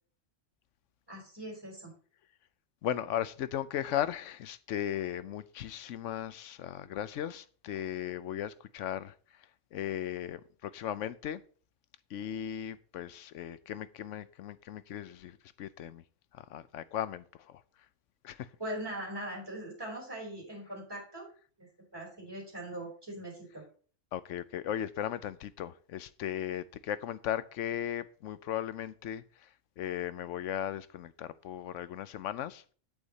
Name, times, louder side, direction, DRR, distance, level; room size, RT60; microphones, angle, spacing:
voice 1, 1.1-1.9 18.6-21.3 21.6-23.6, right 1 dB, 20° right, 5.1 m, -41 dB
voice 2, 2.8-9.1 9.7-11.4 12.1-16.0 16.3-17.6 18.2-18.5 24.1-29.2 29.8-32.7, left 11 dB, 80° left, 1.0 m, -37 dB
8.4 x 8.1 x 4.1 m
omnidirectional pair, 1.3 m